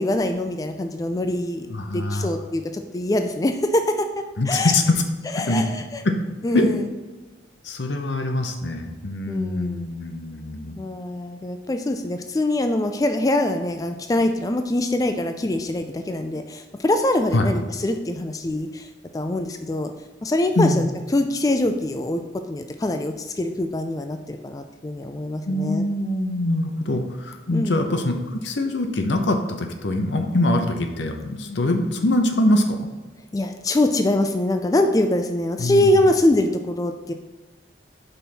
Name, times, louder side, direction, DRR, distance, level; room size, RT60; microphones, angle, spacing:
voice 1, 0.0-4.1 4.5-4.7 5.3-6.0 6.4-6.9 9.3-9.9 10.8-18.9 19.1-19.9 20.2-22.2 22.5-25.8 27.5-27.8 33.3-37.1, left 1 dB, 20° left, 6 dB, 0.3 m, -23 dB
voice 2, 1.7-2.3 4.4-5.0 5.4-5.6 6.0-6.1 6.5-6.7 7.6-10.8 17.3-17.5 20.6-20.9 25.4-32.8 35.6-35.9, left 1 dB, 80° left, 5 dB, 0.8 m, -23 dB
5.4 x 4.1 x 5.9 m, 1.2 s
head